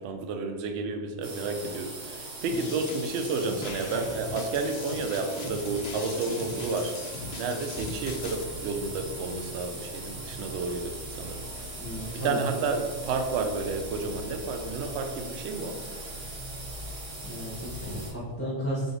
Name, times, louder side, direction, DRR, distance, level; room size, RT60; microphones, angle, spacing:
voice 1, 0.0-7.0 7.4-11.4 12.1-15.8, right 4 dB, 70° right, 6 dB, 0.8 m, -31 dB
sound 1, 1.2-18.1, right 2 dB, 85° right, 1.4 m, -41 dB
sound 2, 2.5-8.4, left 4 dB, 90° left, 0.3 m, -40 dB
sound 3, 7.7-18.1, left 1 dB, 55° left, 0.9 m, -44 dB
voice 2, 11.8-12.5 17.2-18.9, equal, 15° left, -9 dB, 0.6 m, -33 dB
3.9 x 3.3 x 3.7 m, 1.4 s
omnidirectional pair, 1.3 m